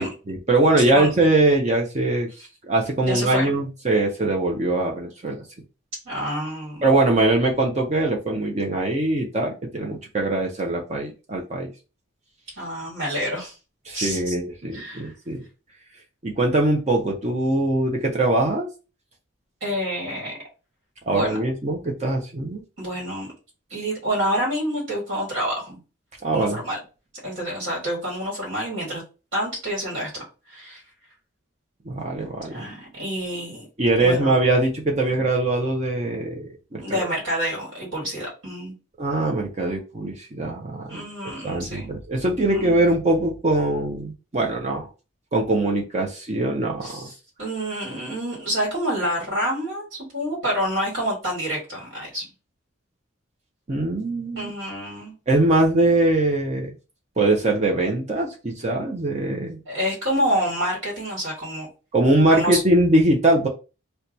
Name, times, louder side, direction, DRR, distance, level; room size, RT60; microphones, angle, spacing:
voice 1, 0.0-2.3 2.6-5.4 6.8-11.7 13.9-15.4 16.2-18.7 21.1-22.6 26.2-26.6 31.9-32.6 33.8-37.1 39.0-41.0 41.4-44.9 45.3-47.1 53.7-54.5 55.3-56.7 57.2-59.6 61.9-63.5, right 2 dB, 30° right, 0 dB, 0.5 m, -22 dB
voice 2, 3.0-3.5 6.0-6.9 12.6-13.5 13.9-14.3 14.6-15.1 19.6-20.4 21.1-21.4 22.8-23.3 23.7-25.8 26.3-26.8 27.2-29.0 29.3-30.8 32.3-33.7 34.0-34.3 35.0-35.2 36.8-38.7 40.9-41.9 42.5-42.7 46.8-47.1 47.4-52.3 54.3-55.1 59.6-61.7 62.3-62.6, equal, 60° right, -4 dB, 1.6 m, -28 dB
2.8 x 2.2 x 3.8 m, 0.31 s
head